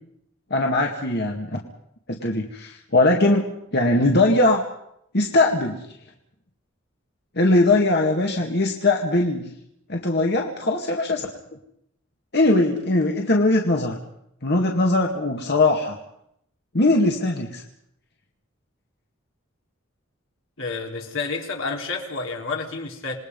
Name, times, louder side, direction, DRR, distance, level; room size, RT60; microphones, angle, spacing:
voice 1, 0.5-1.6 2.1-4.6 5.1-5.9 7.4-9.5 9.9-11.3 12.3-14.0 14.4-15.9 16.7-17.6, left 2 dB, 55° left, 1 dB, 2.1 m, -20 dB
voice 2, 20.6-23.2, left 4 dB, 80° left, 1 dB, 3.8 m, -30 dB
27.5 x 20.0 x 5.4 m, 0.75 s
head